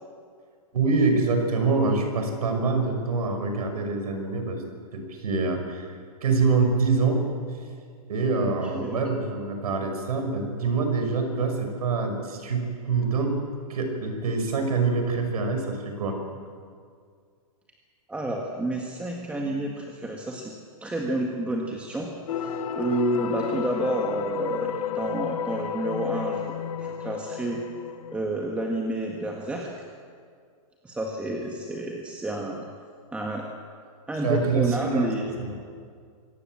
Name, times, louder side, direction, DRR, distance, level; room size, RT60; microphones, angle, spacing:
voice 1, 0.7-4.6 4.9-7.2 8.1-13.4 13.7-16.2 34.2-35.1 35.4-35.5, right 4 dB, 80° right, 4 dB, 6.0 m, -25 dB
voice 2, 8.4-9.0 18.1-20.5 20.8-22.1 22.4-27.6 28.1-29.7 30.8-32.6 33.1-33.5 34.1-35.3, right 1 dB, 5° right, 0 dB, 1.7 m, -30 dB
sound 1, 22.3-28.2, left 8 dB, 65° left, 1.2 m, -32 dB
25.5 x 18.0 x 7.7 m, 2.1 s
hypercardioid pair, 150°, 19 cm